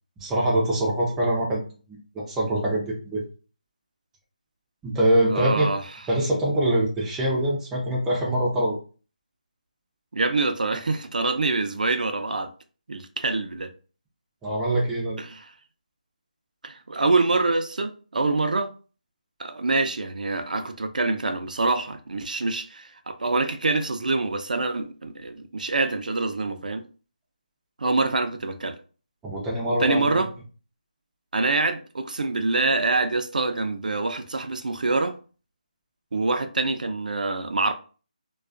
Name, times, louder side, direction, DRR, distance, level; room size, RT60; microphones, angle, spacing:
voice 1, 0.2-1.6 1.9-3.2 4.8-5.7 6.1-8.8 14.4-15.2 29.2-30.2, right 1 dB, 5° right, 0.4 m, -24 dB
voice 2, 5.3-5.8 10.1-12.5 12.9-13.7 15.2-15.5 16.6-18.7 19.4-26.8 27.8-28.8 29.8-30.3 31.3-35.1 36.1-37.7, right 3 dB, 75° right, 0.4 m, -25 dB
2.3 x 2.3 x 2.4 m
figure-of-eight pair, 160°, 5 cm